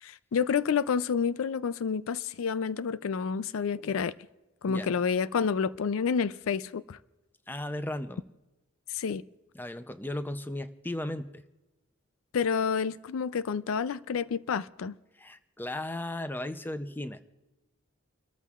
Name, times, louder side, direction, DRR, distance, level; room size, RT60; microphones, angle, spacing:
voice 1, 0.0-4.1 4.6-7.0 8.9-9.2 12.3-14.9, left 6 dB, 80° left, 0.4 m, -29 dB
voice 2, 7.5-8.2 9.5-11.4 15.1-17.2, left 1 dB, 10° left, 0.5 m, -36 dB
30.0 x 14.0 x 2.4 m
head